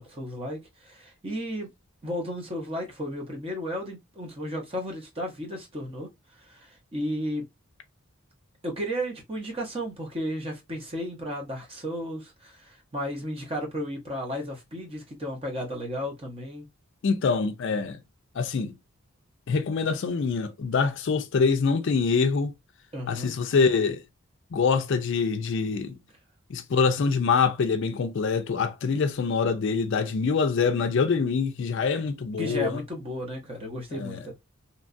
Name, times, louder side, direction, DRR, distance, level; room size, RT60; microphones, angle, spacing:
voice 1, 0.0-1.7 2.0-7.4 8.6-16.7 22.9-23.3 32.4-34.3, equal, 25° right, 0.8 m, -34 dB
voice 2, 17.0-18.0 18.4-18.8 19.5-22.5 23.1-24.0 24.5-26.0 26.5-32.8 33.9-34.2, left 5 dB, 55° left, 0.4 m, -25 dB
2.9 x 2.3 x 2.5 m
head